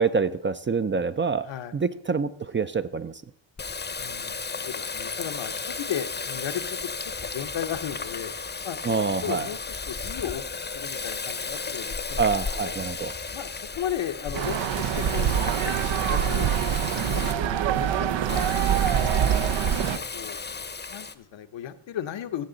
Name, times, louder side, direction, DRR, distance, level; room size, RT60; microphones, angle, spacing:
voice 1, 0.0-1.4 1.7-3.2 8.8-9.5 12.2-13.1, right 5 dB, 25° right, 12 dB, 0.4 m, -26 dB
voice 2, 1.4-1.7 4.0-6.9 7.2-8.3 8.6-10.5 10.7-12.2 12.5-16.5 16.9-17.6 18.0-18.5 19.0-20.4 20.9-22.4, left 10 dB, 70° left, 9 dB, 0.9 m, -36 dB
Water tap faucet, 3.6-17.3 18.3-21.1, left 4 dB, 25° left, 0.7 m, -34 dB
sound 1, 14.3-20.0, right 9 dB, 75° right, 0.7 m, -24 dB
16.0 x 6.6 x 3.9 m, 0.76 s
cardioid pair, 65°, 46 cm